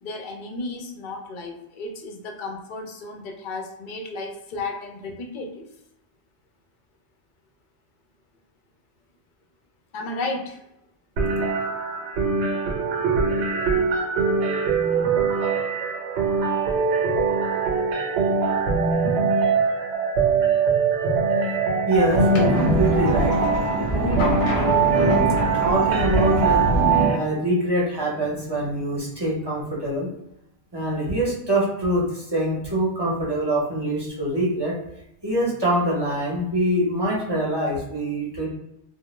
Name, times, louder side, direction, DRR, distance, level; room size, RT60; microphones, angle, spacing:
voice 1, 0.0-5.7 9.9-10.6, left 2 dB, 60° left, 2 dB, 0.6 m, -33 dB
sound 1, 11.2-27.2, right 5 dB, 80° right, 0.9 m, -22 dB
voice 2, 21.9-23.4 23.9-25.2 25.5-26.6 27.1-30.1 30.7-34.7 35.2-38.5, right 1 dB, 25° right, -6 dB, 0.6 m, -24 dB
sound 2, 22.0-27.1, equal, 90° left, 0.9 m, -24 dB
2.1 x 2.0 x 3.0 m, 0.82 s
omnidirectional pair, 1.2 m